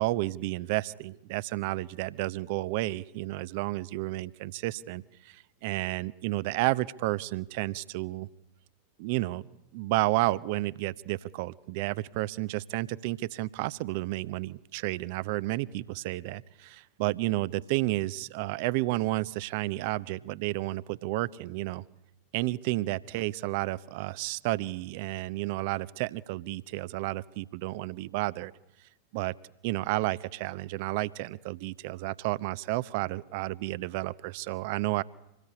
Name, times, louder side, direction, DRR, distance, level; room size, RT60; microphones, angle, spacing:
voice 1, 0.0-8.3 9.0-9.5 9.7-21.8 22.3-28.5 29.1-29.3 29.6-35.0, right 19 dB, 50° right, 18 dB, 0.9 m, -31 dB
26.0 x 19.5 x 9.8 m, 0.90 s
figure-of-eight pair, 90°, 0 cm